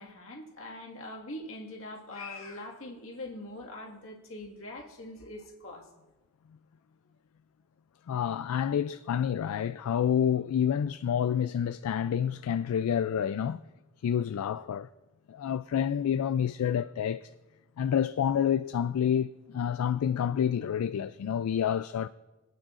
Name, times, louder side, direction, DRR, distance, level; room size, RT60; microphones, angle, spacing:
voice 1, 0.0-5.9, left 1 dB, 65° left, 1.8 m, -42 dB
voice 2, 8.1-13.6 14.0-14.9 15.3-17.3 17.8-22.1, left 8 dB, 80° left, 0.3 m, -28 dB
26.0 x 8.9 x 2.5 m
head